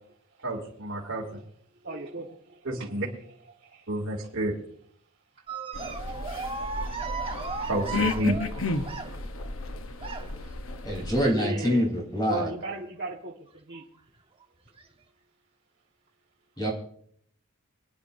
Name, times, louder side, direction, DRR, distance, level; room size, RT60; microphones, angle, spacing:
voice 1, 0.4-1.4 2.6-3.1 3.9-4.5 7.7-8.4, right 1 dB, 70° right, -4 dB, 2.7 m, -30 dB
voice 2, 1.8-2.6 3.6-3.8 7.4-7.5 11.1-11.9 12.3-13.8, right 2 dB, 55° right, -4 dB, 1.5 m, -36 dB
sound 1, 5.5-9.4 10.0-10.5 11.6-11.9 12.3-12.4 13.7-13.8 14.7-14.8, right 5 dB, 25° right, 1.1 m, -36 dB
sound 2, 5.7-11.2, left 3 dB, 70° left, 0.9 m, -33 dB
voice 3, 10.8-12.5 16.6-16.7, equal, 20° left, -1 dB, 3.5 m, -25 dB
26.5 x 10.0 x 2.7 m, 0.67 s
head